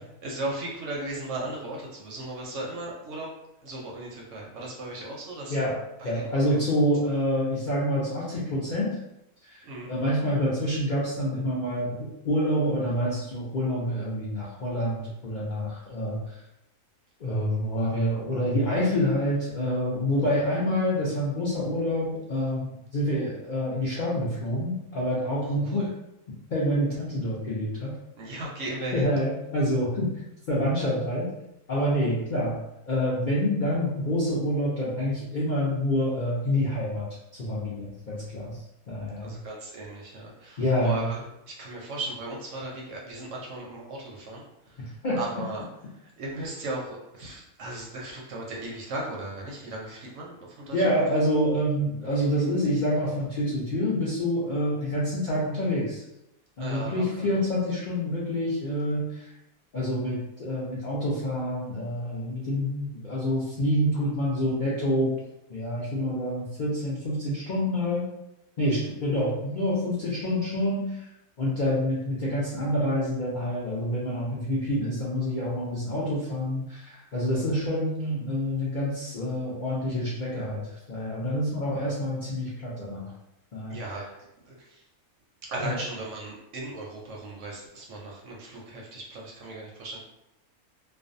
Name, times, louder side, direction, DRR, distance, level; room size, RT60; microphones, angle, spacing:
voice 1, 0.2-3.3 3.6-5.6 6.0-6.6 9.6-9.9 25.4-25.9 28.2-29.1 39.2-41.2 41.5-45.6 45.9-51.0 52.0-52.3 56.6-57.4 83.7-84.8 85.4-90.0, right 2 dB, 65° right, -2 dB, 0.8 m, -37 dB
voice 2, 6.0-9.0 9.5-9.6 9.9-16.2 17.2-25.9 26.5-27.9 28.9-30.1 30.5-31.3 31.7-32.6 32.9-37.1 37.4-38.6 38.9-39.3 40.6-41.1 45.0-45.2 50.7-56.0 56.6-59.2 59.7-65.1 65.5-68.1 68.6-71.0 71.4-80.6 80.9-83.1 83.5-83.8 85.6-85.7, equal, 60° left, -8 dB, 0.5 m, -27 dB
2.5 x 2.2 x 2.5 m, 0.87 s
omnidirectional pair, 1.5 m